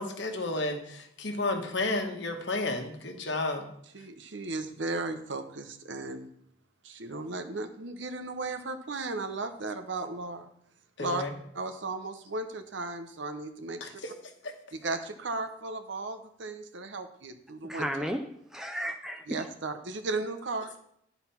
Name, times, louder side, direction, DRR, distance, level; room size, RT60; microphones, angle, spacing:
voice 1, 0.0-3.7 11.0-11.3 13.8-14.1 14.4-14.5, left 2 dB, 65° left, 4 dB, 1.2 m, -32 dB
voice 2, 3.9-6.3 6.8-10.5 11.0-11.2 11.5-14.0 14.7-18.1 19.3-20.7, right 3 dB, 70° right, 8 dB, 0.8 m, -35 dB
voice 3, 17.6-19.5, equal, 5° right, 5 dB, 0.3 m, -34 dB
11.0 x 4.1 x 5.7 m, 0.73 s
head